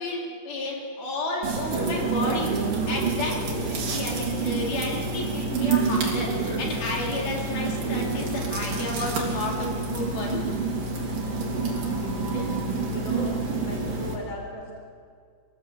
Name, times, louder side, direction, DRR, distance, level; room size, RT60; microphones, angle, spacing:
voice 1, 0.0-2.5 2.9-10.4 12.3-12.5, left 2 dB, 70° left, -2 dB, 5.5 m, -32 dB
sound 1, 1.4-14.1, right 4 dB, 60° right, 4.9 m, -28 dB
voice 2, 11.3-12.6 12.9-14.8, left 1 dB, 30° left, 1 dB, 4.6 m, -39 dB
26.5 x 16.5 x 8.2 m, 2.2 s
omnidirectional pair, 4.4 m